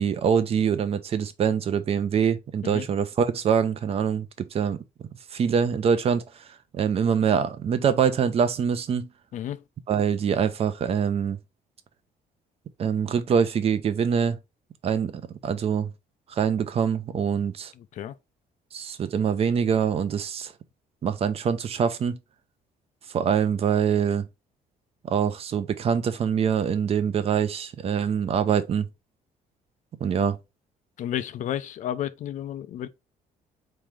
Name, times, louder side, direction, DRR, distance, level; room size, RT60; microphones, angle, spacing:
voice 1, 0.0-4.8 5.3-6.2 6.7-9.1 9.9-11.4 12.8-14.4 14.8-15.9 16.3-17.7 18.7-20.5 21.0-22.2 23.1-24.3 25.0-28.9 30.0-30.4, right 7 dB, 40° right, 0.6 m, -24 dB
voice 2, 9.3-9.6 17.8-18.1 31.0-32.9, left 11 dB, 55° left, 0.5 m, -32 dB
4.5 x 3.2 x 3.6 m
cardioid pair, 145°, 15 cm